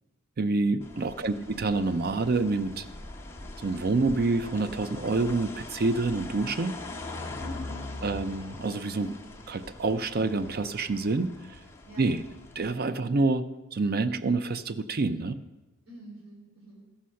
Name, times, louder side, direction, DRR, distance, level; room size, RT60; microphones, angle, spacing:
voice 1, 0.4-2.8 3.6-6.8 8.0-9.2 9.5-11.3 12.0-12.2 12.6-13.4 13.7-15.4, right 3 dB, 45° right, 13 dB, 0.5 m, -27 dB
sound 1, 0.8-12.7, left 2 dB, 10° left, 0.8 m, -42 dB
voice 2, 1.3-1.6 7.4-8.3 11.8-12.1 13.0-13.2 15.9-16.8, left 1 dB, 70° right, -4 dB, 4.3 m, -45 dB
13.0 x 5.7 x 6.3 m, 1.1 s
head